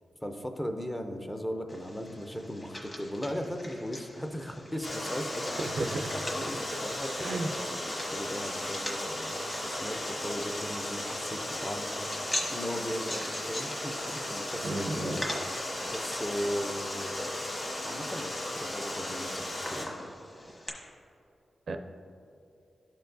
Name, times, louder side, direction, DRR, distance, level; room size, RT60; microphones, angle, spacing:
voice 1, 0.2-5.7 6.1-12.3 12.5-17.1 17.6-19.9, equal, 10° left, 5 dB, 0.5 m, -38 dB
sound 1, 1.7-20.7, left 1 dB, 25° left, 1.2 m, -43 dB
Water, 4.8-19.8, left 1 dB, 65° left, 1.5 m, -36 dB
voice 2, 5.6-6.0 7.2-7.5 14.6-15.2 21.7-21.8, right 2 dB, 60° right, 5 dB, 0.4 m, -32 dB
12.0 x 4.5 x 2.6 m, 2.6 s
wide cardioid pair, 145°, 0 cm